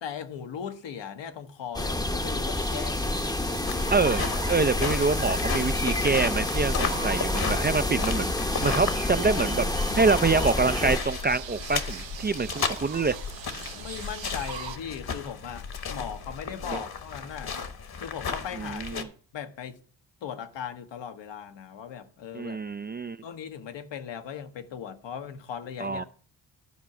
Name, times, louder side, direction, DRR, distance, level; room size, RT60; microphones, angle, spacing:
voice 1, 0.0-3.7 13.7-17.6 18.0-19.8 20.2-22.6 23.2-26.0, left 8 dB, 80° left, 1.0 m, -38 dB
sound 1, 1.7-11.0, left 1 dB, 10° left, 0.7 m, -28 dB
sound 2, 2.5-14.8, right 7 dB, 90° right, 1.1 m, -41 dB
sound 3, 3.7-19.0, left 5 dB, 55° left, 1.3 m, -34 dB
voice 2, 3.9-4.2 4.5-8.3 8.6-9.7 9.9-13.2 16.7-16.8 18.5-19.1 22.3-23.2 25.8-26.0, right 4 dB, 25° right, 0.3 m, -26 dB
11.5 x 4.7 x 5.9 m
cardioid pair, 75°, 44 cm